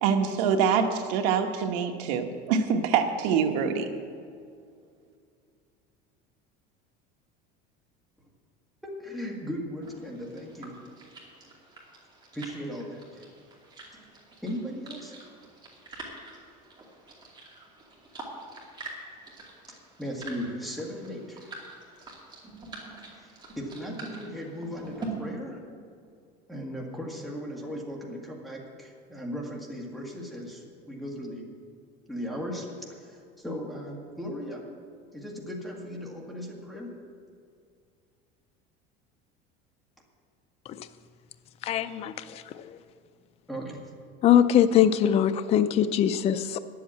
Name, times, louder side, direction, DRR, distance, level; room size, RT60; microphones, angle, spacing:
voice 1, 0.0-3.9, right 6 dB, 85° right, 6 dB, 1.2 m, -25 dB
voice 2, 8.8-10.8 12.3-13.2 14.4-15.1 19.7-21.5 23.2-25.6 26.5-31.5 32.1-34.6 35.1-36.9 43.5-43.8, equal, ahead, -2 dB, 1.8 m, -37 dB
sound 1, 9.8-25.1, right 2 dB, 20° right, 2.5 m, -46 dB
voice 3, 41.6-42.8 44.2-46.6, left 10 dB, 30° left, 11 dB, 0.4 m, -22 dB
10.5 x 7.9 x 8.6 m, 2.3 s
cardioid pair, 150°, 21 cm